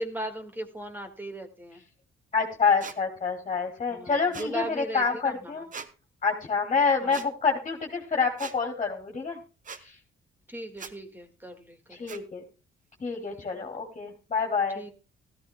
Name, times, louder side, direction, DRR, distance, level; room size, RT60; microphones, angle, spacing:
voice 1, 0.0-1.8 3.9-5.6 7.0-7.2 10.5-12.2 13.6-13.7 14.8-14.9, right 1 dB, 10° right, 7 dB, 1.8 m, -38 dB
voice 2, 2.3-5.7 6.2-9.4 9.8-10.0 11.9-12.4 13.0-14.8, left 5 dB, 30° left, 2 dB, 2.9 m, -27 dB
sound 1, 2.8-3.0 4.3-4.5 5.7-5.9 7.1-7.3 8.4-8.6 9.6-9.8 10.8-10.9 12.1-12.2, right 5 dB, 40° right, 1.1 m, -40 dB
16.0 x 14.0 x 2.2 m, 0.31 s
cardioid pair, 90°, 20 cm